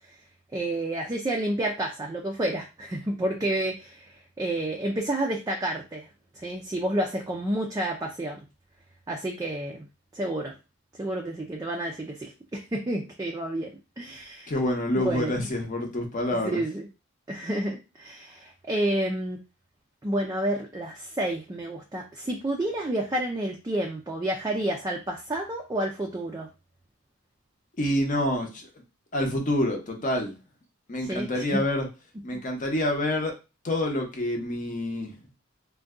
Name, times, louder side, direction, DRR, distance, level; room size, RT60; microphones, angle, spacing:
voice 1, 0.5-6.1 6.3-8.4 9.1-9.9 10.1-10.5 11.0-13.7 14.0-14.5 14.9-15.4 16.3-16.9 17.3-19.4 20.0-26.5 31.0-31.6, right 1 dB, 15° right, 1 dB, 0.4 m, -30 dB
voice 2, 14.5-16.6 27.8-28.7 29.1-30.3 30.9-31.9 32.2-33.4 33.6-35.1, left 1 dB, 40° left, 3 dB, 0.7 m, -27 dB
2.6 x 2.2 x 3.5 m, 0.28 s
head